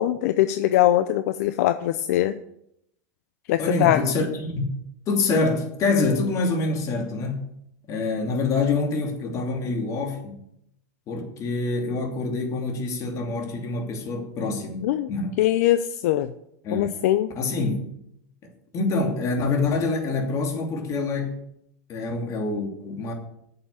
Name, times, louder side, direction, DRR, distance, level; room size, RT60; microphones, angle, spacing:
voice 1, 0.0-2.4 3.5-4.0 14.8-15.1 15.4-16.3 16.7-17.3, left 13 dB, 70° left, 11 dB, 0.6 m, -22 dB
voice 2, 3.6-4.7 5.1-7.5 7.9-10.4 11.1-15.4 16.6-16.9 17.4-17.8 18.7-21.4 21.9-23.1, left 3 dB, 40° left, 3 dB, 2.7 m, -26 dB
8.9 x 6.9 x 8.4 m, 0.75 s
supercardioid pair, 120°, 9 cm